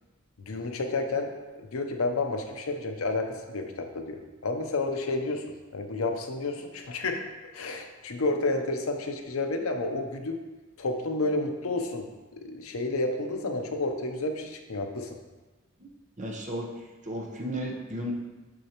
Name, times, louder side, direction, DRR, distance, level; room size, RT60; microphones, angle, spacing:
voice 1, 0.4-1.3 1.6-5.5 5.7-7.2 7.5-10.4 10.8-12.0 12.3-15.2, left 2 dB, 85° left, 5 dB, 0.7 m, -30 dB
voice 2, 16.2-16.7 17.0-18.1, equal, 35° right, -1 dB, 0.9 m, -34 dB
6.4 x 6.4 x 2.9 m, 1.2 s
head